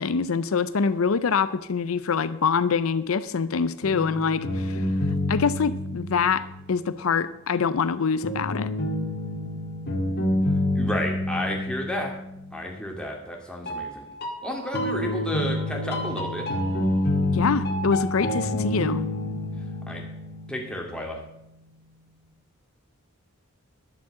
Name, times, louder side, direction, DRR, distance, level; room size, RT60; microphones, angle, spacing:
voice 1, 0.0-4.9 5.3-8.7 17.3-19.0, left 5 dB, 75° left, 13 dB, 0.5 m, -25 dB
sound 1, 3.8-6.9 8.2-12.9 13.7-21.4, left 1 dB, 50° left, 2.0 m, -28 dB
voice 2, 10.7-12.1 12.5-14.1 14.4-16.5 19.9-20.0 20.5-21.2, left 1 dB, 5° left, 0 dB, 2.4 m, -31 dB
11.5 x 7.4 x 7.6 m, 0.82 s
head